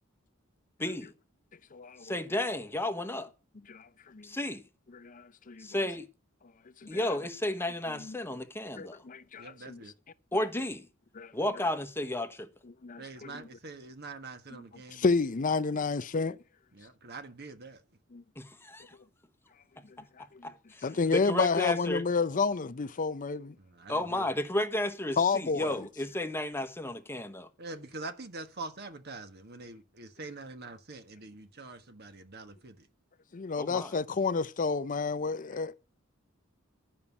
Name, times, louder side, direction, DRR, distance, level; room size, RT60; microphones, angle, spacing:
voice 1, 0.8-1.1 2.0-3.3 4.2-4.6 5.6-6.1 6.9-9.0 10.3-10.9 11.3-12.5 18.4-18.9 20.4-20.9 21.1-22.0 23.9-27.5 33.5-33.9, left 1 dB, 10° left, 1.0 m, -32 dB
voice 2, 1.7-2.0 3.7-4.3 4.9-5.7 6.8-7.0 8.0-8.2 8.8-9.8 11.2-11.3 12.8-13.4 14.5-14.6 14.9-16.4 18.1-18.2 20.3-20.5 20.8-23.5 25.2-25.8 33.3-35.7, left 4 dB, 40° left, 0.6 m, -30 dB
voice 3, 9.4-9.9 13.0-15.1 16.7-17.8 23.6-24.3 27.6-32.9, right 3 dB, 55° right, 1.5 m, -44 dB
12.0 x 5.6 x 7.1 m
head